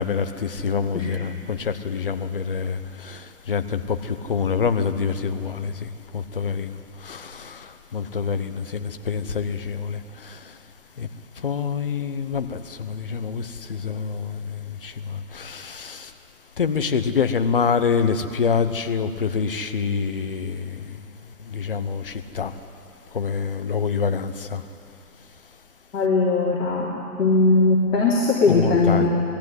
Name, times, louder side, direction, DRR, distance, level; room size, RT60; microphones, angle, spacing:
voice 1, 0.0-10.5 11.0-11.1 11.4-16.1 16.6-21.0 21.4-22.5 23.1-24.6 28.5-29.1, left 6 dB, 35° left, 0.9 m, -26 dB
voice 2, 25.9-26.9 27.2-29.1, left 3 dB, 50° left, 3.7 m, -19 dB
21.0 x 15.0 x 9.6 m
hypercardioid pair, 170°, 46 cm